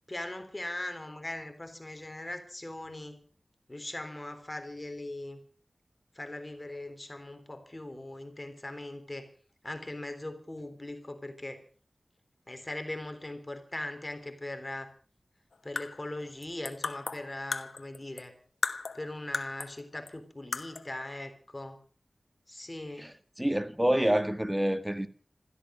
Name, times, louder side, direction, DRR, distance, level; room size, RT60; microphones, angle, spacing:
voice 1, 0.1-3.2 3.7-5.4 6.2-9.3 9.6-11.6 12.5-14.9 15.6-18.3 18.9-21.8 22.5-23.1, left 1 dB, 30° left, 3.5 m, -40 dB
sound 1, 15.5-18.3 18.6-19.8 20.1-20.2 20.5-20.9, left 4 dB, 80° left, 1.3 m, -36 dB
voice 2, 23.0-25.1, right 1 dB, 10° right, 1.8 m, -28 dB
16.0 x 14.0 x 6.3 m
cardioid pair, 40°, 0 cm